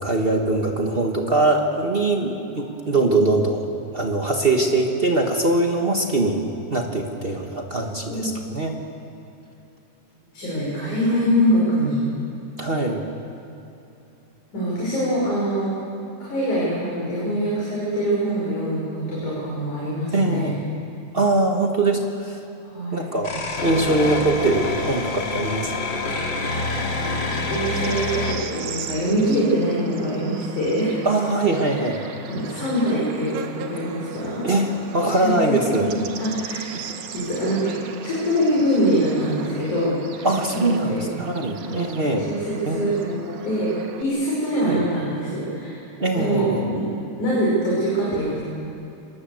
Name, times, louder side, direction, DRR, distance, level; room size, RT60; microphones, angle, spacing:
voice 1, 0.0-3.6 3.9-6.4 6.7-8.7 12.6-13.0 20.1-20.6 21.1-22.4 22.9-23.3 23.6-25.7 31.0-32.0 34.4-35.9 40.2-42.3 42.6-43.4 44.6-44.8 46.0-46.6, right 2 dB, 45° right, 2 dB, 0.7 m, -22 dB
voice 2, 8.1-8.4 10.3-12.0 14.5-15.8 16.2-20.6 22.6-23.1 26.6-27.3 27.5-31.0 31.6-31.9 32.2-34.5 35.1-36.7 37.1-37.7 38.0-40.3 40.5-41.0 41.5-41.9 42.2-42.9 43.4-43.7 44.0-45.8 46.1-46.9 47.2-48.4, equal, 70° left, -6 dB, 7.0 m, -24 dB
sound 1, 23.2-28.3, left 3 dB, 40° left, 3.0 m, -26 dB
Bird / Insect, 26.6-44.0, right 7 dB, 75° right, 2.6 m, -38 dB
26.0 x 20.5 x 7.8 m, 2.9 s
omnidirectional pair, 3.6 m